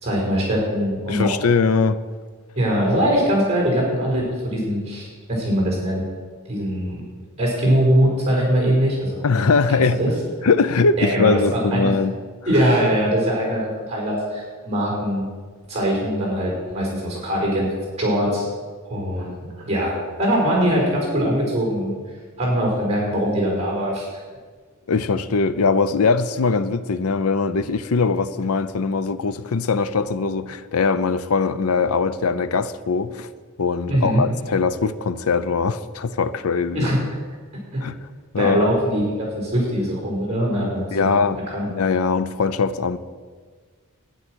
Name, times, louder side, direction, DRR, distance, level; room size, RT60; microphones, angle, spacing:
voice 1, 0.0-1.3 2.6-6.0 6.4-7.0 7.4-9.2 9.7-10.1 11.0-11.9 12.5-15.2 15.7-18.5 18.8-19.9 20.2-21.9 22.4-24.2 33.9-34.2 36.7-37.0 37.7-37.8 38.4-41.2 41.5-41.6, equal, 30° right, 4.5 m, -22 dB
voice 2, 1.1-2.0 9.2-10.0 10.4-12.1 24.9-33.3 33.6-36.9 37.8-37.9 38.3-38.7 40.9-41.4 41.7-43.0, left 4 dB, 90° left, 0.6 m, -21 dB
11.5 x 10.0 x 6.3 m
head